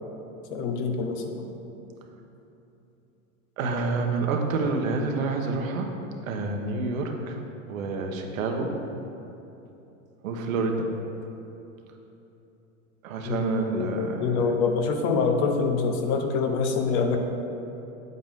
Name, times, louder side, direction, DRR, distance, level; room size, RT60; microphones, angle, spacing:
voice 1, 0.5-1.5 13.2-17.2, left 5 dB, 50° left, 4 dB, 1.1 m, -26 dB
voice 2, 3.6-5.9 6.2-7.4 7.7-8.8 10.2-10.9 13.0-14.5, right 3 dB, 85° right, 3 dB, 1.3 m, -28 dB
8.8 x 8.1 x 3.7 m, 2.9 s
supercardioid pair, 125°, 40 cm